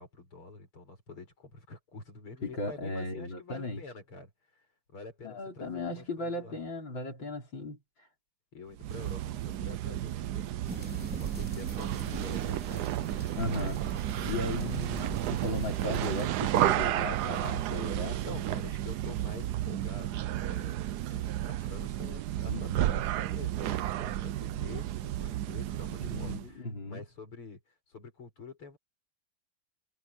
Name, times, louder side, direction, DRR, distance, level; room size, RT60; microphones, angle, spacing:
voice 1, 0.0-6.6 8.5-13.4 14.2-14.5 14.8-15.0 18.1-20.8 21.1-28.8, left 3 dB, 85° left, 7.2 m, -48 dB
voice 2, 2.4-3.8 5.2-7.8 13.3-13.8 14.2-18.4 22.5-23.0 26.0-27.0, left 2 dB, 60° left, 5.4 m, -36 dB
sound 1, 8.8-26.5, right 13 dB, 70° right, 0.9 m, -32 dB
sound 2, 10.7-16.3, equal, 5° right, 3.6 m, -44 dB
omnidirectional pair, 2.3 m